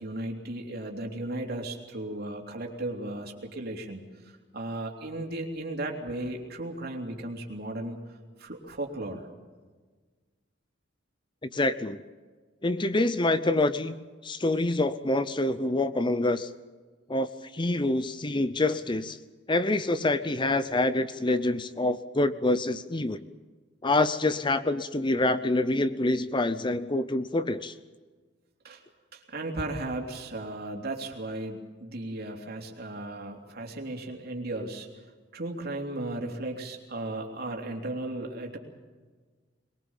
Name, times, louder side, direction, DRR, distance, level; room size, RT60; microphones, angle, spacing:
voice 1, 0.0-8.0 8.4-9.3 28.6-28.8 29.1-34.9 35.3-38.6, right 2 dB, 55° right, 2 dB, 3.4 m, -35 dB
voice 2, 11.5-12.0 12.6-16.5 17.1-17.3 17.5-19.2 19.5-23.2 23.8-27.7, left 2 dB, 25° left, 13 dB, 0.7 m, -26 dB
22.0 x 22.0 x 7.3 m, 1.4 s
head